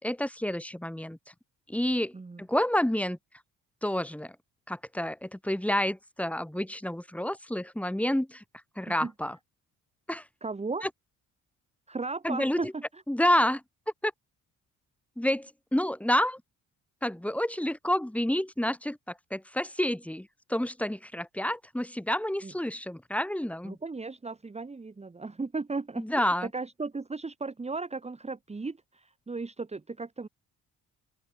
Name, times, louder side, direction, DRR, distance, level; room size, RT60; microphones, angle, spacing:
voice 1, 0.0-1.2 1.7-3.2 3.8-4.4 4.7-8.4 8.8-9.4 10.1-10.2 10.8-10.9 12.2-12.7 13.1-13.6 14.0-14.1 15.2-16.4 17.0-23.8 26.0-26.5, left 1 dB, 5° left, 3.6 m, -29 dB
voice 2, 10.4-10.8 11.9-13.0 22.4-22.5 23.6-30.3, right 3 dB, 20° right, 2.0 m, -36 dB
open air
cardioid pair, 90°, 30 cm